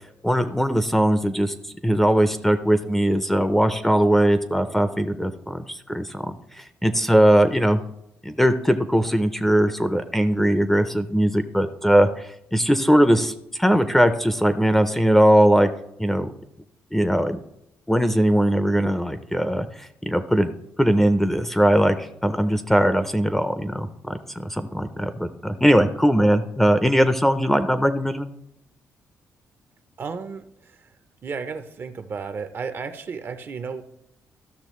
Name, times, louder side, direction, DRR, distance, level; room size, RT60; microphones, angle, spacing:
voice 1, 0.2-1.5 1.8-6.3 6.8-7.8 8.2-12.1 12.5-13.3 13.6-15.7 16.0-16.3 16.9-17.4 17.9-20.5 20.8-28.3, equal, 5° left, 10 dB, 0.5 m, -20 dB
voice 2, 30.0-30.9 31.2-33.8, right 5 dB, 45° right, 10 dB, 0.6 m, -33 dB
13.5 x 6.2 x 3.1 m, 0.79 s
cardioid pair, 100°, 5 cm